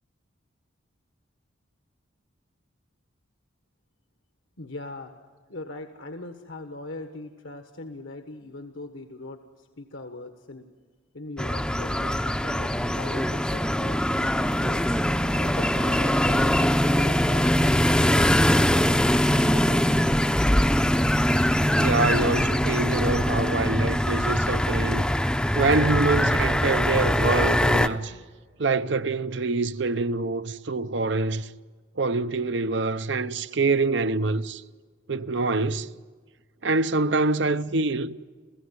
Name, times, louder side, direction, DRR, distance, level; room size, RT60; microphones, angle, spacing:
voice 1, 4.6-5.1 5.5-10.7 11.1-15.0 15.3-19.2, left 2 dB, 80° left, 1.5 m, -40 dB
sound 1, 11.4-27.9, equal, 5° left, 0.6 m, -22 dB
voice 2, 21.8-25.1 25.5-28.1 28.6-31.5 32.0-34.6 35.1-35.9 36.6-38.2, right 3 dB, 65° right, 0.8 m, -25 dB
29.0 x 16.0 x 9.7 m
head